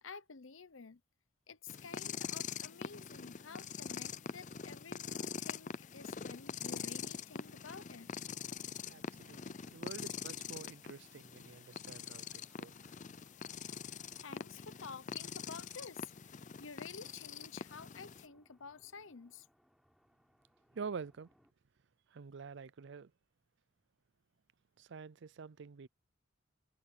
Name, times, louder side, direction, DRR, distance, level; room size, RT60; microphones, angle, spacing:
voice 1, 0.0-1.0 1.5-8.1 13.6-13.7 14.1-19.5, left 5 dB, 80° left, 0.9 m, -51 dB
sound 1, 1.7-18.2, left 6 dB, 40° left, 0.5 m, -44 dB
sound 2, 3.3-21.5, equal, ahead, 5.6 m, -73 dB
voice 2, 8.9-12.7 20.7-21.3 22.1-23.1 24.8-25.9, right 5 dB, 60° right, 0.5 m, -47 dB
head